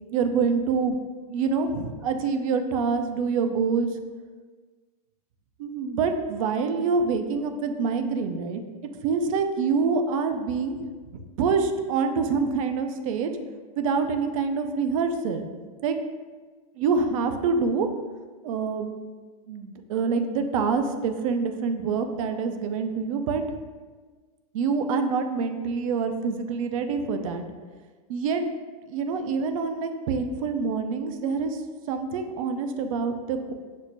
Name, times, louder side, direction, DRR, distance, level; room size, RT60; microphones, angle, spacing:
voice 1, 0.1-1.0 1.3-3.9 5.6-8.6 9.0-10.8 11.4-13.3 13.8-15.5 15.8-16.0 16.8-17.9 18.4-18.9 19.5-23.4 24.5-27.4 28.1-28.4 28.9-31.6 31.9-33.5, right 5 dB, 60° right, 7 dB, 0.4 m, -26 dB
6.1 x 2.1 x 2.6 m, 1.4 s
hypercardioid pair, 125°, 20 cm